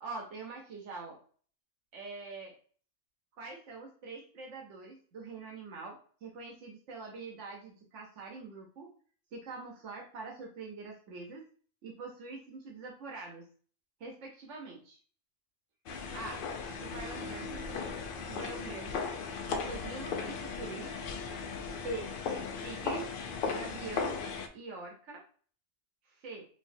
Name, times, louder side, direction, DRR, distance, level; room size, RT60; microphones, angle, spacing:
voice 1, 0.0-1.2 1.9-2.5 3.4-6.0 6.2-8.9 9.3-11.4 11.8-13.4 14.0-15.0 16.1-16.4 16.8-18.0 18.3-19.1 19.5-20.9 21.8-22.1 22.5-23.0 23.5-24.2 24.5-25.2 26.1-26.5, right 3 dB, 85° right, 0 dB, 1.1 m, -44 dB
sound 1, 15.9-24.5, left 5 dB, 60° left, 0.6 m, -37 dB
4.2 x 2.6 x 2.6 m, 0.44 s
omnidirectional pair, 1.2 m